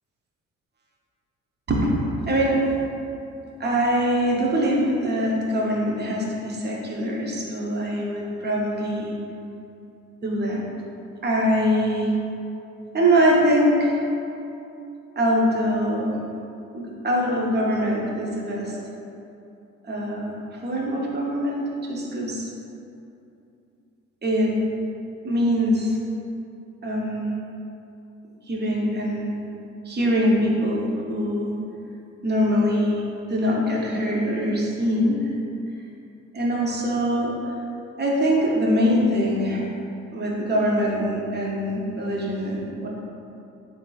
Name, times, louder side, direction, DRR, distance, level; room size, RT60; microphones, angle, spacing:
voice 1, 2.3-2.7 3.6-9.1 10.2-10.6 11.2-12.1 12.9-14.0 15.2-16.2 16.7-18.8 19.8-20.3 20.6-22.5 24.2-24.5 25.2-26.0 26.8-27.3 28.5-29.4 29.9-31.5 32.2-35.3 36.3-37.3 38.0-39.7 40.1-42.9, equal, 35° right, -3 dB, 0.8 m, -23 dB
3.6 x 2.6 x 3.9 m, 2.7 s
cardioid pair, 90°, 30 cm